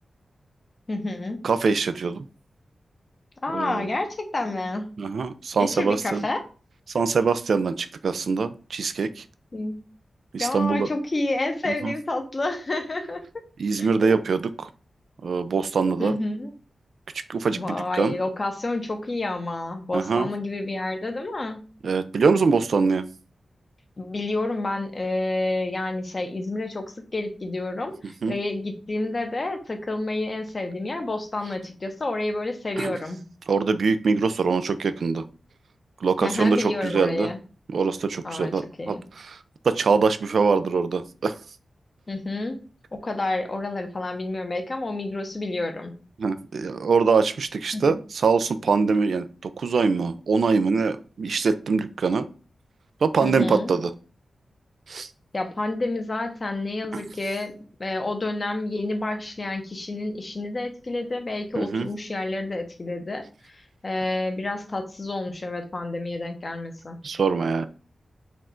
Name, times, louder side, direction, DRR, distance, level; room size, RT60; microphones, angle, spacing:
voice 1, 0.9-1.4 3.4-4.9 5.6-6.4 9.5-9.8 10.4-13.5 13.8-14.2 16.0-16.5 17.6-21.6 24.0-26.8 27.1-33.2 36.2-37.4 38.2-38.5 38.8-39.0 42.1-42.6 42.9-45.9 47.7-47.8 53.2-53.7 55.3-63.2 63.5-67.0, left 2 dB, 30° left, 5 dB, 0.8 m, -29 dB
voice 2, 1.4-2.2 3.5-3.9 5.0-6.2 6.9-9.2 10.3-10.9 11.7-11.9 13.6-14.7 15.2-16.1 17.3-18.1 19.9-20.3 21.8-23.0 28.2-28.3 32.8-33.0 33.5-35.2 36.0-37.3 37.7-39.4 39.6-41.3 46.2-52.2 53.0-53.9 54.9-55.1 56.9-57.0 61.6-61.9 67.0-67.7, right 4 dB, 70° right, 12 dB, 0.3 m, -23 dB
4.2 x 2.5 x 4.3 m, 0.36 s
wide cardioid pair, 150°, 0 cm